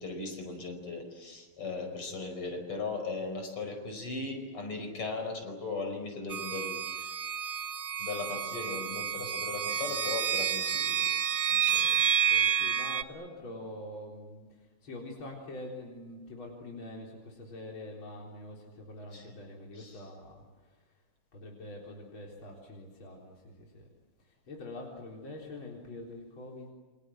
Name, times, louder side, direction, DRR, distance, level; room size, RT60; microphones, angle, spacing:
voice 1, 0.0-7.2 8.0-11.1 11.5-12.0 19.1-19.2 19.8-20.0, left 3 dB, 80° left, 5 dB, 6.0 m, -38 dB
voice 2, 1.6-2.2 9.1-9.3 11.9-21.0 21.3-23.9 24.2-26.7, left 1 dB, 65° left, -1 dB, 4.7 m, -45 dB
sound 1, 6.3-13.0, right 8 dB, 50° right, 0.6 m, -29 dB
28.5 x 27.0 x 7.7 m, 1.3 s
omnidirectional pair, 2.4 m